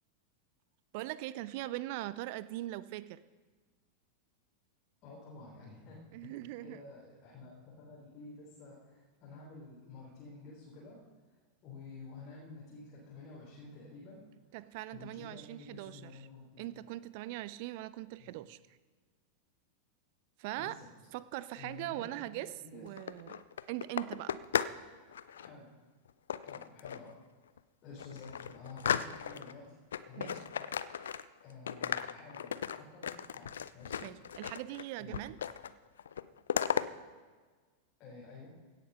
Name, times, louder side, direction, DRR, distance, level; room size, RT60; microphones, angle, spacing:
voice 1, 0.9-3.2 6.1-6.8 14.5-16.3 16.6-18.8 20.4-20.8 21.1-24.4 30.2-30.4 34.0-35.4, right 16 dB, 45° right, 17 dB, 0.4 m, -41 dB
voice 2, 5.0-6.3 6.6-11.0 11.6-14.2 14.9-16.7 18.2-18.3 20.5-20.9 21.5-22.8 25.3-25.7 26.4-27.2 27.8-29.7 30.1-30.4 31.4-34.0 35.0-35.2 38.0-38.5, left 3 dB, 35° left, -5 dB, 3.6 m, -51 dB
sound 1, 22.9-24.8 25.1-25.5 26.3-27.1 27.6-27.7 28.0-29.5 29.9-31.4 31.7-34.8 35.1-35.7 36.0-36.9, left 8 dB, 65° left, 0.5 m, -36 dB
16.5 x 8.1 x 5.6 m, 1.4 s
figure-of-eight pair, 90°, 0 cm